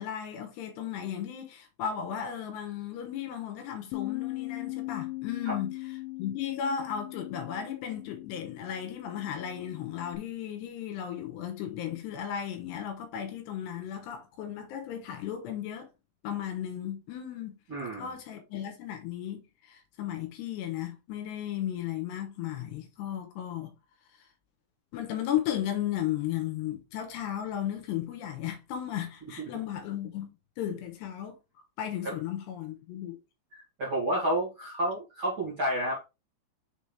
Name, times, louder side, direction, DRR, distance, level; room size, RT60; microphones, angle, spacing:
voice 1, 0.0-5.7 6.2-15.9 16.2-17.6 18.0-23.7 24.9-31.4 31.8-33.2, left 10 dB, 75° left, 3.0 m, -35 dB
Bass guitar, 3.9-10.2, left 21 dB, 90° left, 3.1 m, -39 dB
voice 2, 17.7-18.2 29.4-29.5 32.0-32.2 33.5-36.0, right 1 dB, 40° right, 1.9 m, -30 dB
7.2 x 4.1 x 3.4 m
omnidirectional pair, 5.3 m